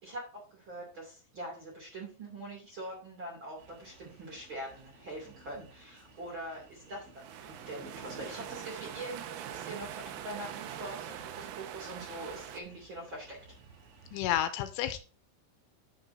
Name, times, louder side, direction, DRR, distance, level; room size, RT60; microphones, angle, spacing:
voice 1, 0.0-13.4, right 1 dB, 35° right, -2 dB, 2.3 m, -43 dB
sound 1, 3.6-14.2, right 2 dB, 60° right, 5.2 m, -55 dB
sound 2, 7.1-12.6, right 10 dB, 85° right, 3.4 m, -43 dB
voice 2, 14.1-15.0, left 12 dB, 80° left, 10 dB, 3.1 m, -30 dB
10.0 x 8.7 x 2.7 m, 0.35 s
omnidirectional pair, 5.8 m